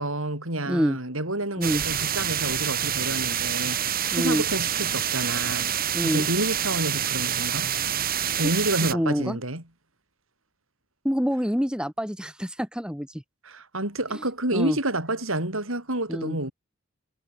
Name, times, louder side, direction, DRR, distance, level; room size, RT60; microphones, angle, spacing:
voice 1, 0.0-5.7 6.0-7.7 8.2-9.6 13.4-16.5, right 1 dB, 75° right, 7.9 m, -29 dB
voice 2, 0.6-1.0 1.6-1.8 4.1-4.4 5.9-6.3 8.9-9.4 11.0-13.1 14.5-14.8 16.1-16.4, equal, 5° right, 2.8 m, -26 dB
sound 1, 1.6-8.9, right 9 dB, 45° right, 5.0 m, -27 dB
head